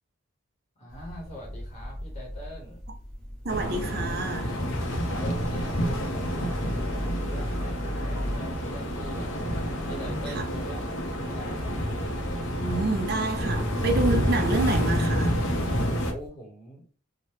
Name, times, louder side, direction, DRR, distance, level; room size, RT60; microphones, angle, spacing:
voice 1, 0.8-2.8 5.1-9.3 9.8-11.8 16.0-16.8, equal, 30° left, 0.9 m, -43 dB
sound 1, 0.9-16.3, equal, 5° left, 0.9 m, -39 dB
voice 2, 3.4-4.6 10.3-10.5 12.6-15.4, right 2 dB, 50° right, 0.5 m, -28 dB
sound 2, 3.5-16.1, equal, 80° left, 0.7 m, -28 dB
sound 3, 4.7-15.8, equal, 20° right, 1.0 m, -52 dB
2.8 x 2.1 x 3.2 m
head